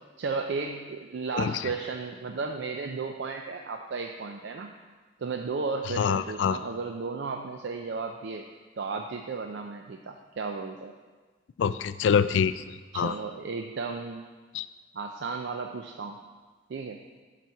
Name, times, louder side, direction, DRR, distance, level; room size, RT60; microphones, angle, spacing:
voice 1, 0.2-4.7 5.2-8.5 8.8-10.9 12.9-14.2 14.9-16.2 16.7-17.0, right 4 dB, 65° right, 4 dB, 0.4 m, -34 dB
voice 2, 1.3-1.7 6.0-6.6 11.6-13.2 14.5-14.7, left 7 dB, 70° left, 14 dB, 0.3 m, -26 dB
12.0 x 4.1 x 4.6 m, 1.4 s
head